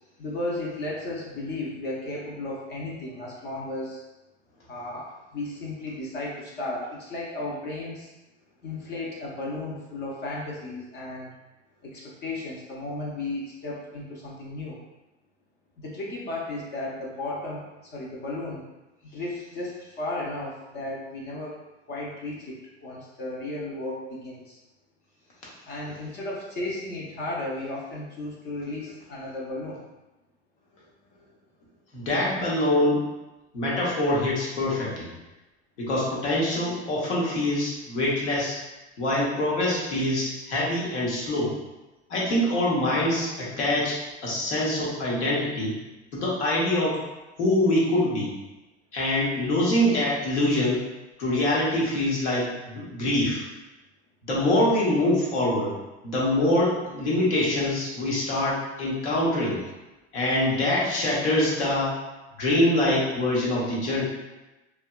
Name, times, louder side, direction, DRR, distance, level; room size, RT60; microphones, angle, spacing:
voice 1, 0.2-4.0 4.7-8.1 8.6-11.3 11.8-14.8 15.8-18.7 19.1-21.6 21.9-24.6 25.7-29.8, left 2 dB, 30° left, -4 dB, 0.6 m, -34 dB
voice 2, 31.9-33.0 33.5-35.1 35.8-38.6 39.0-41.5 42.1-44.0 44.2-45.7 46.1-47.0 47.4-48.3 48.9-50.8 51.2-53.4 54.3-55.7 56.0-59.6 60.1-62.0 62.4-64.0, left 1 dB, 75° left, -5 dB, 1.0 m, -24 dB
2.7 x 2.2 x 2.2 m, 1.0 s
figure-of-eight pair, 80°, 36 cm